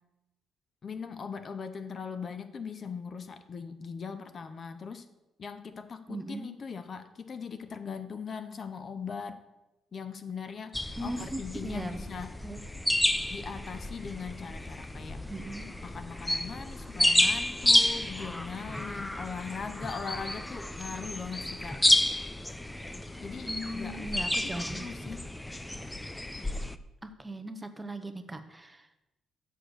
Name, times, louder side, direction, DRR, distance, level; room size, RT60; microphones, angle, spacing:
voice 1, 0.8-5.1 5.4-9.4 9.9-12.4 13.3-15.3 15.8-21.8 23.2-25.3, left 6 dB, 45° left, 10 dB, 0.6 m, -40 dB
voice 2, 6.1-6.5 11.0-12.0 12.4-12.6 15.3-15.7 23.5-24.9 27.0-28.9, right 1 dB, 15° right, 8 dB, 0.8 m, -38 dB
sound 1, 10.7-26.8, left 1 dB, 10° left, 0.4 m, -30 dB
6.7 x 6.6 x 6.2 m, 0.97 s
cardioid pair, 90°, 0 cm